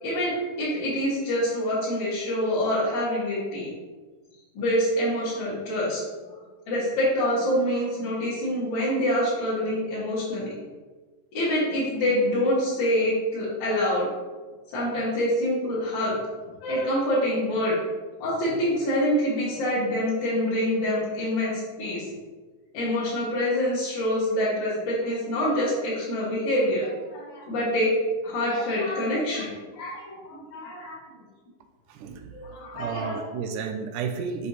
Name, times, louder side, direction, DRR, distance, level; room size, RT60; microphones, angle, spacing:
voice 1, 0.0-3.7 4.5-6.0 6.7-10.5 11.3-14.1 14.7-16.2 16.6-17.8 18.2-21.5 21.8-22.1 22.7-27.9 28.2-31.0 32.3-33.2, left 1 dB, 60° left, -12 dB, 3.3 m, -26 dB
voice 2, 31.9-32.4 32.7-34.5, right 6 dB, 80° right, 6 dB, 2.0 m, -32 dB
7.6 x 6.3 x 3.0 m, 1.3 s
omnidirectional pair, 3.9 m